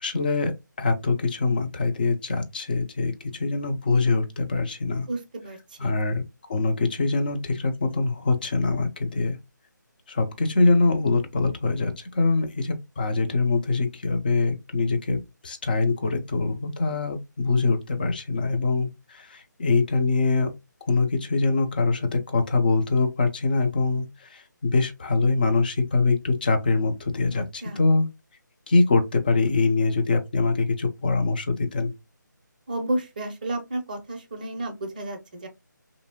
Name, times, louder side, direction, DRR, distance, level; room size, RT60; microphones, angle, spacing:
voice 1, 0.0-5.1 5.8-6.2 6.5-9.4 10.1-20.5 20.9-28.1 28.7-31.9, left 3 dB, 30° left, 0.5 m, -24 dB
voice 2, 5.1-6.0 27.3-27.8 32.7-35.5, right 1 dB, 25° right, 0.6 m, -32 dB
3.2 x 2.6 x 2.8 m
figure-of-eight pair, 150°, 10 cm